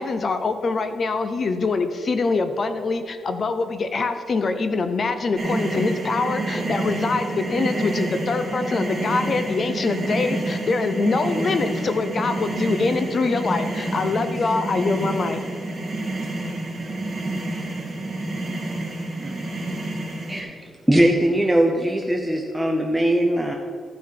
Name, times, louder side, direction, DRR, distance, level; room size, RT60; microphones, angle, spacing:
voice 1, 0.0-15.4, left 3 dB, 40° left, 9 dB, 0.6 m, -24 dB
sound 1, 5.4-20.4, right 2 dB, 25° right, 2.8 m, -28 dB
voice 2, 14.1-14.6 16.6-17.2 17.6-18.6 19.2-19.5, right 2 dB, 45° right, -2 dB, 2.3 m, -45 dB
voice 3, 20.3-23.5, right 1 dB, 5° right, 1 dB, 0.7 m, -20 dB
14.5 x 5.9 x 4.6 m, 2.1 s
wide cardioid pair, 145°, 0 cm